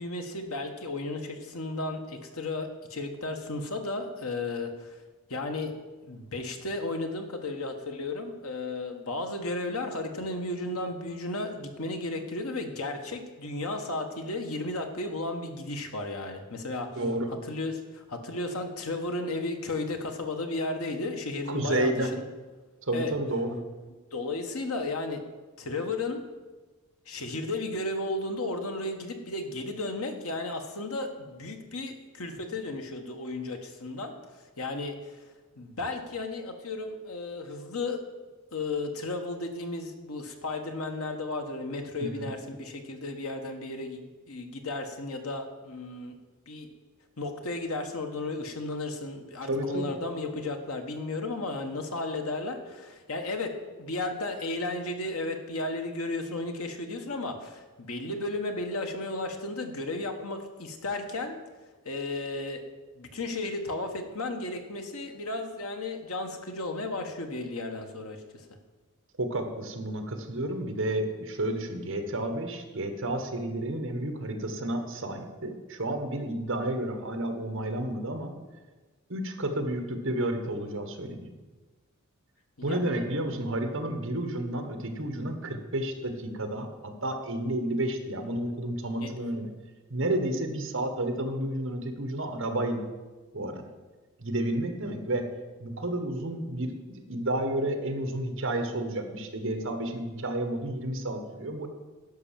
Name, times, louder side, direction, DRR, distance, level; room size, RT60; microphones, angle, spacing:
voice 1, 0.0-5.0 5.3-5.7 6.0-16.9 17.5-22.2 22.9-23.1 24.1-25.2 25.6-26.2 27.1-35.2 35.6-38.0 38.5-46.2 46.5-46.7 47.2-61.4 61.8-62.6 62.9-68.4 82.6-83.0 89.0-89.1, left 2 dB, 75° left, 5 dB, 1.4 m, -34 dB
voice 2, 16.9-17.3 21.5-22.1 22.8-23.6 42.0-42.3 49.5-49.9 69.2-78.3 79.1-81.3 82.6-89.5 89.9-92.9 93.3-93.6 94.2-95.2 95.6-101.7, right 1 dB, 60° right, 6 dB, 1.4 m, -31 dB
11.0 x 5.9 x 7.5 m, 1.3 s
head